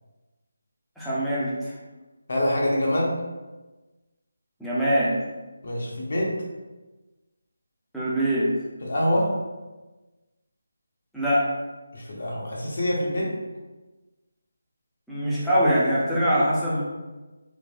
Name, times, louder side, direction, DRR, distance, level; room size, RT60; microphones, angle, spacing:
voice 1, 1.0-1.8 4.6-5.1 7.9-8.5 11.1-11.5 15.1-16.9, equal, ahead, -11 dB, 0.4 m, -23 dB
voice 2, 2.3-3.1 5.6-6.3 8.8-9.3 11.9-13.3, equal, 50° left, -3 dB, 0.6 m, -25 dB
3.2 x 2.1 x 2.5 m, 1.2 s
figure-of-eight pair, 170°, 0 cm